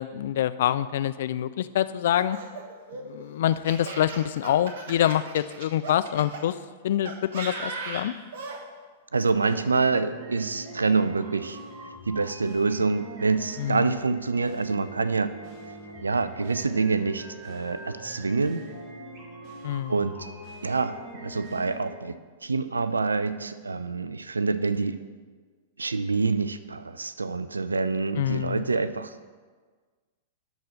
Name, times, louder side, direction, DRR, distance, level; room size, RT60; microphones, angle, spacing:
voice 1, 0.0-2.4 3.0-6.6 6.8-8.1 13.6-13.9 19.6-20.0 28.2-28.7, left 11 dB, 55° left, 14 dB, 0.4 m, -26 dB
Laughter, 2.0-6.4 7.1-8.6, right 3 dB, 55° right, 1.3 m, -37 dB
voice 2, 9.1-11.6 12.1-15.3 16.0-18.6 19.9-20.1 20.6-25.0 25.8-29.1, right 4 dB, 80° right, 13 dB, 0.4 m, -26 dB
sound 1, 9.4-21.9, right 1 dB, 40° right, 2.4 m, -43 dB
12.0 x 4.2 x 6.3 m, 1.5 s
figure-of-eight pair, 100°, 0 cm